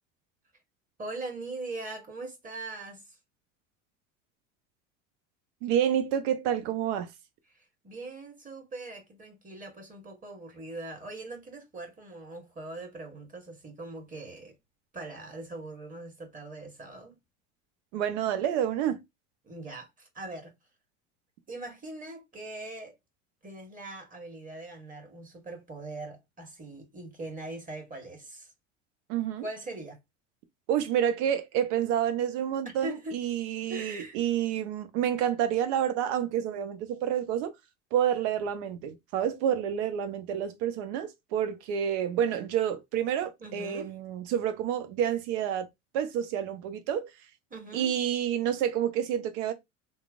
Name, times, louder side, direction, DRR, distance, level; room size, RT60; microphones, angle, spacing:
voice 1, 1.0-3.2 7.5-14.5 14.9-17.2 19.4-20.5 21.5-22.9 23.4-28.5 29.4-30.0 32.6-33.2 33.7-34.2 43.4-43.9 47.5-47.9, right 2 dB, 20° right, 1.3 m, -41 dB
voice 2, 5.6-7.1 17.9-19.0 29.1-29.4 30.7-37.5 37.9-45.7 45.9-47.1 47.7-49.5, right 9 dB, 65° right, 0.7 m, -29 dB
3.0 x 2.1 x 2.4 m
hypercardioid pair, 75°, 39 cm